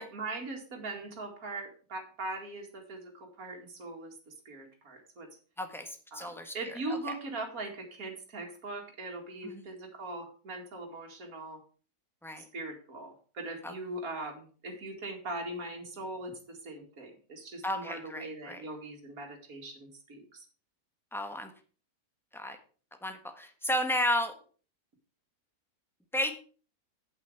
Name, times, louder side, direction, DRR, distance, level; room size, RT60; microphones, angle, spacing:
voice 1, 0.0-5.3 6.1-11.6 12.4-20.5, right 2 dB, 65° right, 2 dB, 2.5 m, -41 dB
voice 2, 5.6-6.5 9.4-9.6 12.2-12.4 13.6-13.7 17.6-18.6 21.1-21.5 22.3-22.6 23.0-24.3 26.1-26.3, left 1 dB, ahead, 6 dB, 1.1 m, -33 dB
8.4 x 8.2 x 4.7 m, 0.39 s
omnidirectional pair, 1.6 m